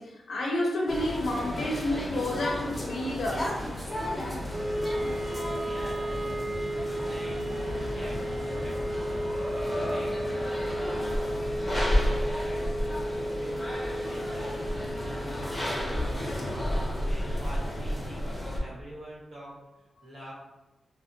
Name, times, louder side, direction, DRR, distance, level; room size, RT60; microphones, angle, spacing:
voice 1, 0.0-3.6, left 1 dB, 75° left, -2 dB, 0.5 m, -30 dB
sound 1, 0.9-18.6, left 1 dB, 10° left, 0.6 m, -32 dB
Wind instrument woodwind instrument, 4.5-16.7, equal, 35° right, 0.3 m, -34 dB
voice 2, 5.5-6.3 7.0-8.3 8.6-9.3 9.8-19.6 20.0-20.3, equal, 70° right, -7 dB, 1.2 m, -46 dB
4.2 x 2.0 x 2.7 m, 1.0 s
wide cardioid pair, 140°, 0 cm